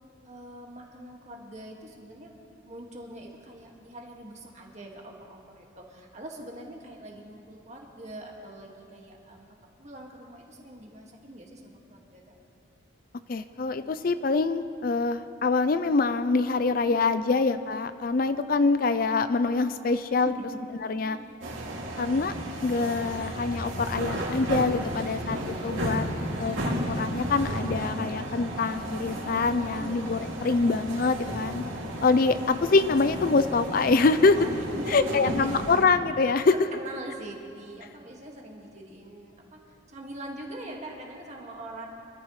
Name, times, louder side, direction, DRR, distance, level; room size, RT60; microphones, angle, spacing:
voice 1, 0.3-2.3 2.7-12.3 17.1-17.4 20.2-20.6 21.0-21.3 24.9-25.7 29.7-30.0 30.4-30.5 34.3-35.5 36.5-39.6 39.9-41.9, right 1 dB, 35° right, 0 dB, 1.9 m, -43 dB
voice 2, 13.3-20.3 20.9-21.2 22.0-22.3 22.6-26.1 26.4-31.6 32.0-34.4 34.9-36.5, left 4 dB, 45° left, 11 dB, 0.4 m, -25 dB
sound 1, 21.4-35.9, right 1 dB, 85° right, 2.5 m, -33 dB
25.0 x 14.0 x 3.2 m, 2.5 s
head